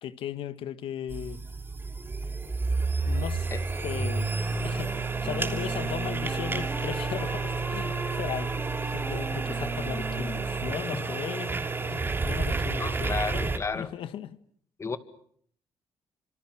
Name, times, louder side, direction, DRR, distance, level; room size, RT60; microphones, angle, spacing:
voice 1, 0.0-1.4 3.1-3.5 3.8-4.4 4.6-14.4, left 10 dB, 75° left, 1.7 m, -37 dB
sound 1, 1.1-13.6, right 4 dB, 25° right, 3.1 m, -30 dB
Wind instrument woodwind instrument, 4.3-11.7, left 1 dB, 10° left, 6.1 m, -41 dB
voice 2, 12.8-13.9 14.8-15.0, left 4 dB, 30° left, 2.2 m, -32 dB
29.5 x 26.5 x 6.3 m
cardioid pair, 110°, 9 cm